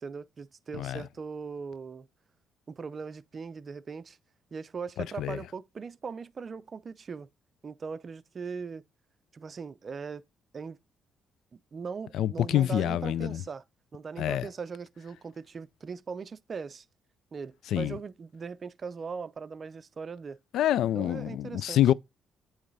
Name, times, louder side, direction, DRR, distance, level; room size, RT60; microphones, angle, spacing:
voice 1, 0.0-2.1 2.7-4.2 4.5-7.3 7.6-8.8 9.3-10.2 10.5-10.8 11.7-13.6 13.9-16.8 17.3-20.4 20.9-21.8, right 5 dB, 40° right, 0.5 m, -39 dB
voice 2, 12.1-13.4 14.2-14.5 17.7-18.0 20.5-21.9, left 12 dB, 80° left, 0.3 m, -26 dB
8.7 x 3.2 x 4.0 m
cardioid pair, 90°, 0 cm